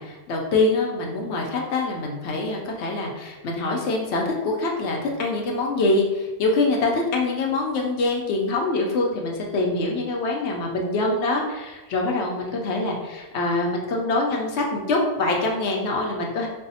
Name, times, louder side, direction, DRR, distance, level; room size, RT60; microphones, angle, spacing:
voice 1, 0.0-16.5, left 2 dB, 65° left, 0 dB, 0.9 m, -24 dB
5.3 x 2.0 x 2.7 m, 1.1 s
omnidirectional pair, 1.3 m